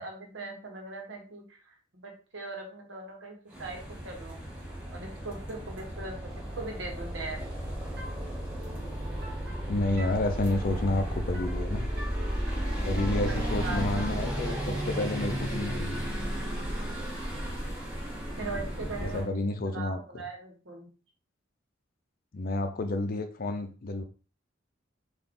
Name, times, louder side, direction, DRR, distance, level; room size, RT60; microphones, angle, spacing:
voice 1, 0.0-4.4 4.9-6.2 6.5-7.4 12.7-13.9 18.4-19.4 19.7-20.9, right 3 dB, 75° right, 1 dB, 1.1 m, -40 dB
sound 1, 3.5-19.3, equal, 10° right, 1.5 m, -34 dB
sound 2, 8.0-17.5, equal, 55° right, 0.8 m, -43 dB
voice 2, 9.7-11.9 12.8-16.0 19.0-20.0 22.3-24.0, left 2 dB, 50° left, 7 dB, 0.5 m, -30 dB
3.9 x 2.5 x 3.7 m, 0.37 s
head